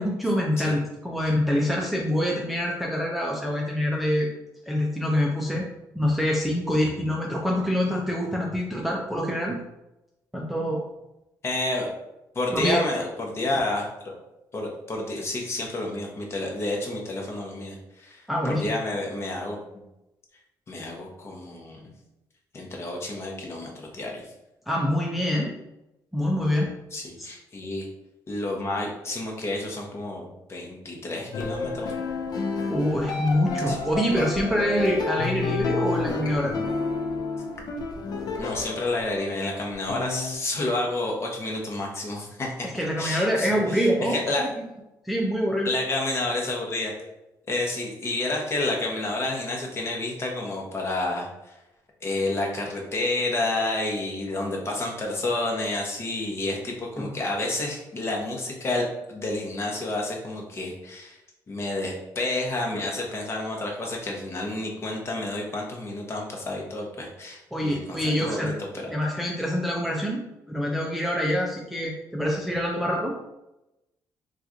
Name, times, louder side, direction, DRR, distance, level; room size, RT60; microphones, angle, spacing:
voice 1, 0.0-4.3 4.7-5.6 6.0-9.6 10.3-10.8 12.5-12.8 18.3-18.7 24.7-25.6 26.1-26.7 32.7-36.5 42.7-44.5 45.0-45.7 57.0-57.1 67.5-68.5 68.9-70.2 70.5-73.1, equal, ahead, -2 dB, 0.5 m, -25 dB
voice 2, 11.4-11.9 12.3-14.1 14.5-19.6 20.7-21.9 22.5-24.3 26.9-27.9 28.3-31.9 33.7-33.8 38.4-44.5 45.6-46.9 47.5-51.5 52.0-61.2 61.5-69.0, left 2 dB, 35° left, 0 dB, 0.9 m, -30 dB
sound 1, 31.3-40.4, left 3 dB, 60° left, 0.5 m, -30 dB
2.9 x 2.4 x 3.7 m, 0.93 s
cardioid pair, 115°, 8 cm